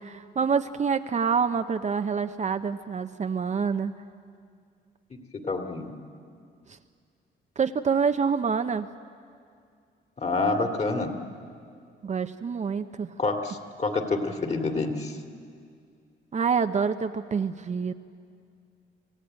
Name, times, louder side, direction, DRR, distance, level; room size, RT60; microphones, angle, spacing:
voice 1, 0.0-3.9 6.7-6.8 7.6-8.9 12.0-13.1 16.3-17.9, right 6 dB, 35° right, 8 dB, 0.7 m, -27 dB
voice 2, 5.1-5.9 10.2-11.1 13.2-15.1, left 3 dB, 35° left, 4 dB, 2.5 m, -28 dB
27.0 x 15.5 x 8.9 m, 2.3 s
cardioid pair, 90°, 20 cm